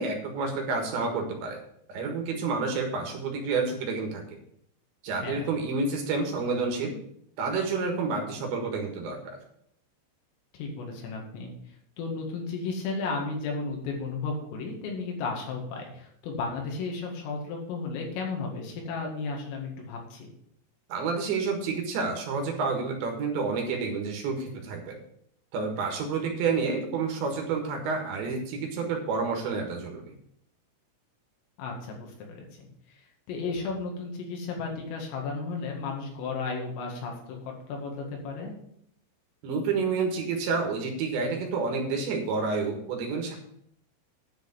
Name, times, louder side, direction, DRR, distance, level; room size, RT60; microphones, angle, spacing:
voice 1, 0.0-1.6 1.9-4.4 5.0-7.0 7.4-9.4 20.9-25.0 25.5-30.2 39.4-43.4, right 4 dB, 70° right, 2 dB, 3.5 m, -29 dB
voice 2, 10.5-11.5 12.0-20.3 31.6-32.7 33.3-38.5, left 4 dB, 80° left, 0 dB, 4.5 m, -34 dB
10.5 x 5.1 x 7.9 m, 0.70 s
omnidirectional pair, 5.8 m